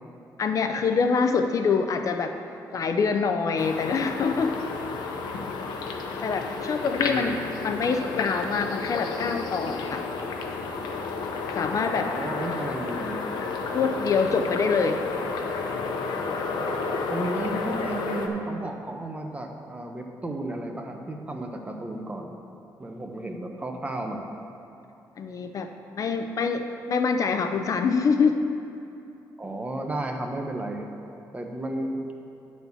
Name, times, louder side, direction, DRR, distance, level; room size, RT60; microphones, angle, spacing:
voice 1, 0.4-2.4 2.7-4.6 6.2-7.4 7.6-10.0 11.6-12.1 13.7-15.0 25.2-25.7 25.9-28.4, left 5 dB, 50° left, 6 dB, 0.5 m, -25 dB
sound 1, 3.6-18.3, left 4 dB, 90° left, 0.8 m, -31 dB
voice 2, 7.0-7.6 11.9-13.2 17.1-22.3 22.8-24.3 29.4-30.9 31.3-32.0, right 1 dB, 20° right, 3 dB, 0.9 m, -33 dB
10.0 x 4.2 x 7.0 m, 2.7 s
cardioid pair, 105°, 7 cm